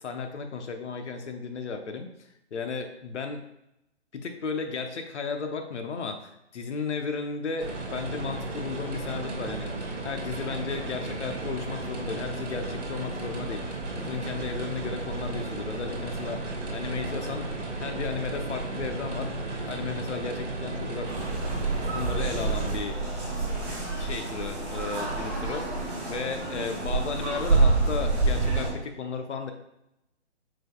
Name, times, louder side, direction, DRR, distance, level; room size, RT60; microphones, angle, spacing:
voice 1, 0.0-2.1 2.5-3.5 4.1-13.6 14.0-16.4 16.7-17.5 17.8-21.1 21.9-23.0 23.4-23.5 24.0-25.6 26.0-29.5, left 5 dB, 80° left, 6 dB, 0.7 m, -34 dB
sound 1, 7.6-22.8, right 2 dB, 80° right, 1.3 m, -34 dB
sound 2, 21.0-28.7, right 3 dB, 5° right, 1.0 m, -27 dB
4.9 x 3.8 x 2.2 m, 0.85 s
hypercardioid pair, 165°, 35 cm